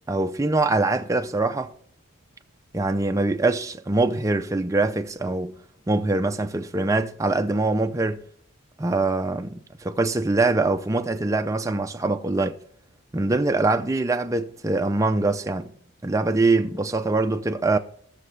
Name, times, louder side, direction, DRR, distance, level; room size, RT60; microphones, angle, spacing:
voice 1, 0.1-1.7 2.7-5.6 5.9-8.2 8.8-12.6 13.1-15.7 16.0-17.8, right 2 dB, 15° right, 0.4 m, -23 dB
15.5 x 6.5 x 3.2 m
head